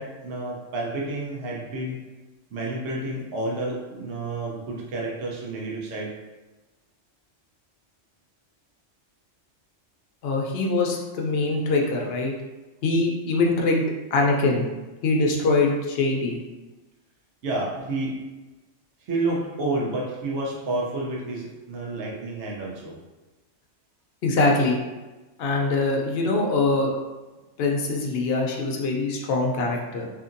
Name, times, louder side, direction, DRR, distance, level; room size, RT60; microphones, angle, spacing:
voice 1, 0.0-2.0 2.5-6.1 17.4-18.2 19.0-22.9, right 2 dB, 65° right, -3 dB, 1.0 m, -30 dB
voice 2, 10.2-12.3 12.8-13.8 14.1-14.7 15.0-16.4 24.2-24.8 25.4-26.9 27.6-30.1, left 3 dB, 65° left, 0 dB, 0.7 m, -23 dB
2.7 x 2.6 x 2.5 m, 1.2 s
omnidirectional pair, 1.3 m